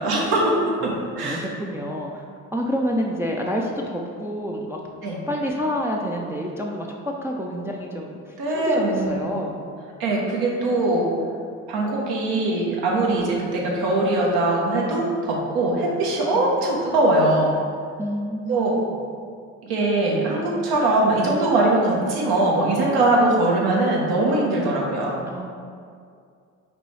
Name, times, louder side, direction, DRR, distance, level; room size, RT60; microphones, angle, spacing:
voice 1, 0.0-1.4 5.0-5.2 8.4-9.2 10.0-11.1 11.7-17.5 18.5-18.8 19.6-25.2, right 2 dB, 70° right, -2 dB, 1.1 m, -21 dB
voice 2, 0.8-2.2 2.5-4.8 5.3-9.6 15.7-15.9 16.3-16.5 18.0-19.0 25.3-25.5, equal, 5° right, -1 dB, 0.4 m, -28 dB
5.2 x 3.0 x 3.2 m, 2.2 s
hypercardioid pair, 65°, 39 cm